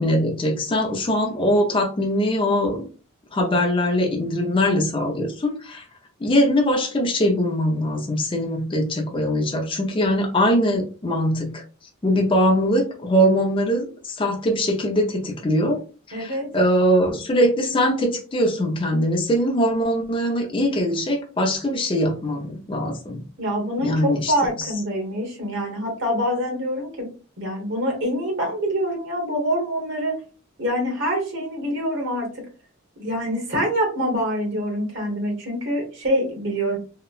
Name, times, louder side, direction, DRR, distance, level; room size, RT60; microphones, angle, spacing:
voice 1, 0.0-2.9 3.3-5.8 6.2-11.6 12.0-15.8 16.1-23.2 23.8-24.3 24.6-24.7, equal, 25° left, 1 dB, 0.5 m, -22 dB
voice 2, 16.1-16.5 23.4-27.1 27.4-30.2 30.6-32.4 33.0-36.8, equal, 60° right, 1 dB, 1.1 m, -25 dB
2.8 x 2.1 x 2.3 m, 0.36 s
head